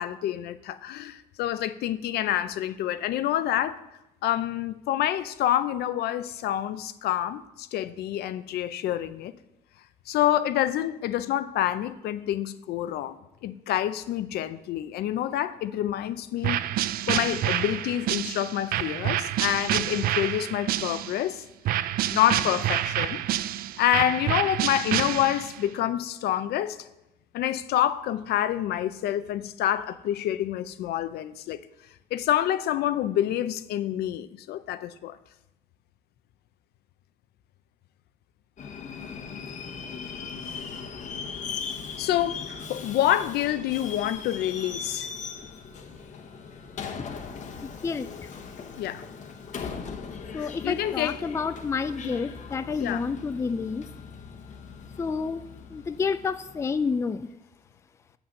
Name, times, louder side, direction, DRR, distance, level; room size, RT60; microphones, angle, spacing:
voice 1, 0.0-3.8 4.2-9.4 10.1-13.1 13.4-16.6 17.1-21.4 22.1-23.2 23.8-26.9 27.3-31.6 32.1-35.2 42.0-45.1 48.8-49.0 50.3-51.2 52.8-53.1, left 12 dB, 70° left, 0.5 m, -27 dB
sound 1, 16.4-21.2 21.7-25.6, right 12 dB, 60° right, 0.4 m, -28 dB
Subway metro underground, 38.6-57.0, left 5 dB, 45° left, 1.0 m, -39 dB
voice 2, 47.6-48.3 50.3-53.9 55.0-55.4 55.7-57.3, left 5 dB, 15° left, 0.4 m, -29 dB
7.3 x 6.0 x 6.5 m
cardioid pair, 110°, 17 cm